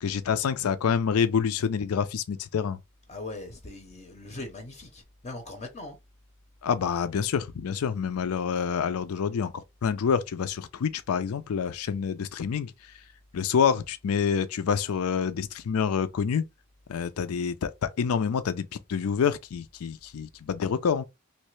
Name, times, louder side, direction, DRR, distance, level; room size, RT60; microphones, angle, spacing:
voice 1, 0.0-2.8 6.6-12.7 13.3-16.4 16.9-21.0, left 7 dB, 85° left, 0.4 m, -27 dB
voice 2, 3.1-6.0, left 2 dB, 30° left, 0.6 m, -40 dB
3.2 x 2.7 x 3.1 m
head